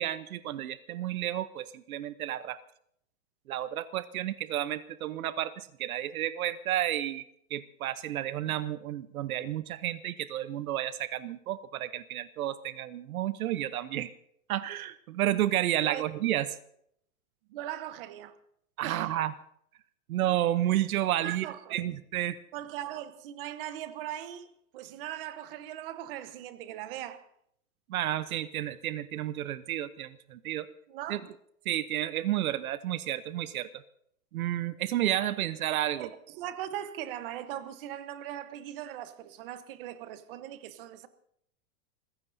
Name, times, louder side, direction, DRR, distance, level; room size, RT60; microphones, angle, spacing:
voice 1, 0.0-2.6 3.5-7.2 7.5-14.1 14.5-16.5 18.8-19.3 20.1-21.5 21.7-22.4 27.9-30.7 31.1-31.2 31.6-33.7 34.3-36.1, right 13 dB, 85° right, 0.9 m, -31 dB
voice 2, 17.5-18.4 18.8-19.1 21.2-22.0 22.5-24.5 24.7-27.3 30.9-31.2 36.0-41.1, right 12 dB, 40° right, 1.1 m, -39 dB
29.0 x 16.0 x 2.7 m
supercardioid pair, 165°, 41 cm